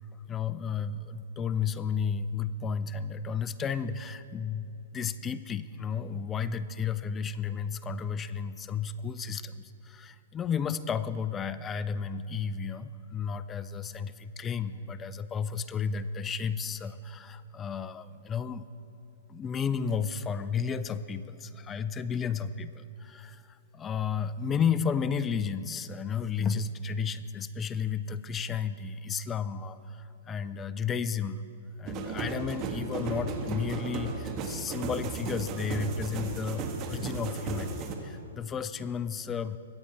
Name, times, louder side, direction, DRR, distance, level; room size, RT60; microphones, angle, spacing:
voice 1, 0.3-18.6 19.3-31.5 31.8-39.6, left 6 dB, 20° left, 14 dB, 0.5 m, -33 dB
sound 1, 31.8-37.9, right 4 dB, 35° right, 1.5 m, -35 dB
22.5 x 8.7 x 4.2 m, 2.8 s
hypercardioid pair, 125°, 0 cm